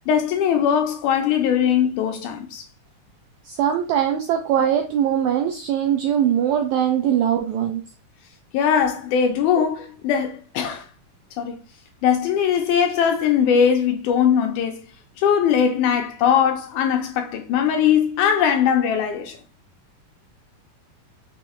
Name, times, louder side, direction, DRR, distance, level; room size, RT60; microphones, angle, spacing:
voice 1, 0.1-2.6 8.5-10.9 11.4-11.6 12.0-14.8 15.2-19.4, left 8 dB, 80° left, 1.8 m, -20 dB
voice 2, 3.5-7.8, right 9 dB, 85° right, 1.6 m, -21 dB
5.4 x 2.1 x 3.0 m
omnidirectional pair, 3.8 m